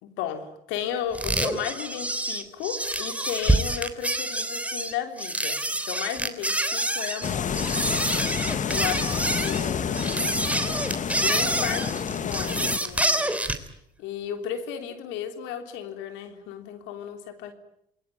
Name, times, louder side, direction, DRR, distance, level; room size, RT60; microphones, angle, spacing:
voice 1, 0.0-7.8 8.6-9.1 9.4-10.4 11.1-13.3 14.0-17.5, left 9 dB, 70° left, 7 dB, 3.4 m, -34 dB
sound 1, 1.1-13.7, right 1 dB, 5° right, 3.3 m, -27 dB
sound 2, 7.2-12.8, left 7 dB, 40° left, 1.5 m, -29 dB
28.0 x 21.5 x 9.3 m, 0.77 s
hypercardioid pair, 60°, 20 cm